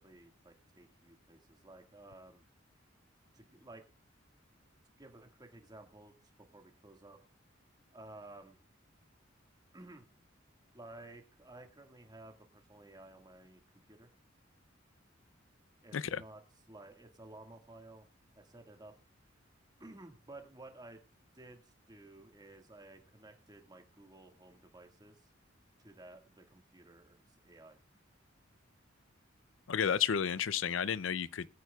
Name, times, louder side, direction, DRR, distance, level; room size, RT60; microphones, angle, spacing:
voice 1, 0.0-2.4 3.3-3.8 5.0-6.1 6.4-7.2 7.9-8.6 9.7-10.1 10.7-13.6 13.9-14.1 15.8-16.4 16.7-18.1 18.3-18.9 19.8-21.0 21.3-25.3 25.8-27.8, right 2 dB, 20° right, 1.8 m, -54 dB
voice 2, 29.7-31.5, left 8 dB, 80° left, 0.5 m, -32 dB
21.5 x 9.2 x 2.3 m
head